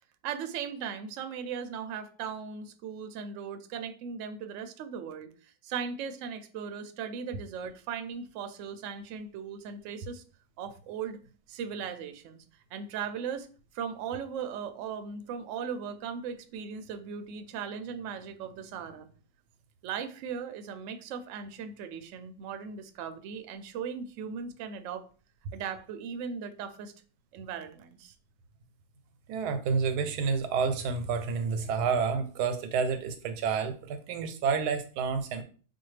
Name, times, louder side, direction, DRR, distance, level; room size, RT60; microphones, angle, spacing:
voice 1, 0.2-10.2 10.6-11.2 11.5-12.4 12.7-13.5 13.7-19.1 19.8-25.0 25.5-26.9 27.3-28.1, right 7 dB, 70° right, 8 dB, 0.8 m, -38 dB
voice 2, 29.3-35.4, right 5 dB, 85° right, 9 dB, 1.1 m, -29 dB
4.2 x 2.3 x 3.2 m, 0.39 s
omnidirectional pair, 1.6 m